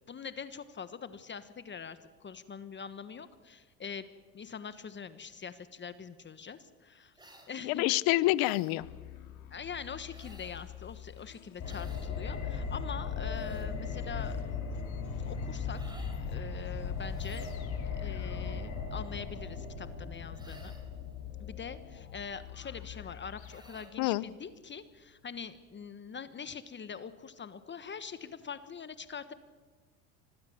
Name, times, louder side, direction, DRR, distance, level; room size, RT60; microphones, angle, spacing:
voice 1, 0.1-4.1 4.3-7.1 7.5-7.8 9.5-14.4 15.3-17.5 17.9-20.7 21.4-29.3, left 6 dB, 25° left, 12 dB, 1.3 m, -43 dB
sound 1, 7.2-7.5 8.4-8.8 10.1-10.7 11.6-12.1 13.0-13.7 15.7-16.2 17.1-17.7 20.3-21.0 23.4-24.0, right 1 dB, 10° right, 4.8 m, -56 dB
voice 2, 7.6-8.8 24.0-24.2, left 18 dB, 60° left, 20 dB, 0.8 m, -27 dB
sound 2, 8.8-24.4, left 11 dB, 90° left, 2.3 m, -50 dB
sound 3, 11.6-23.4 23.7-23.8, left 5 dB, 40° left, 6.4 m, -38 dB
25.5 x 18.5 x 7.3 m, 1.5 s
hypercardioid pair, 90°, 41 cm